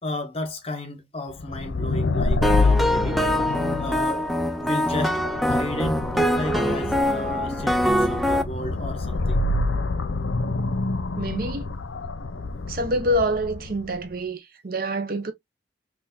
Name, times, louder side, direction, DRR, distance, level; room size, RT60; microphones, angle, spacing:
voice 1, 0.0-3.2 3.8-4.2 4.6-5.2 5.5-9.4, left 1 dB, 30° left, 0.9 m, -33 dB
sound 1, 1.4-14.0, left 3 dB, 85° left, 0.6 m, -27 dB
sound 2, 2.4-8.4, equal, ahead, 0.3 m, -23 dB
voice 2, 11.2-11.7 12.7-15.3, equal, 50° right, 0.6 m, -26 dB
3.9 x 2.5 x 2.5 m
head